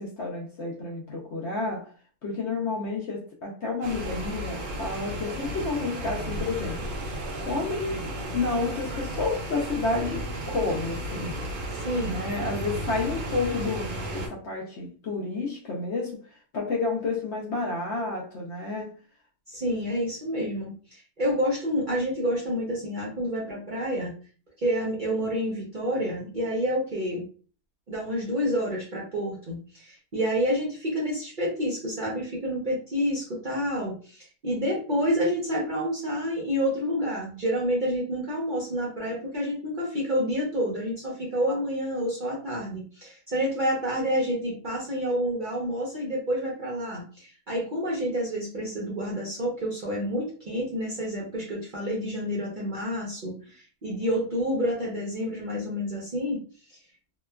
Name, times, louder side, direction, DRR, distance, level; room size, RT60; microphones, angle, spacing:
voice 1, 0.0-1.9 2.2-6.8 7.4-8.0 8.3-11.3 12.0-16.2 16.5-18.9, left 3 dB, 60° left, 0.8 m, -30 dB
sound 1, 3.8-14.3, right 1 dB, 85° right, 1.2 m, -34 dB
voice 2, 11.7-12.2 19.5-24.1 24.6-27.3 27.9-56.4, equal, 45° right, 0.7 m, -29 dB
2.9 x 2.2 x 2.2 m
omnidirectional pair, 1.6 m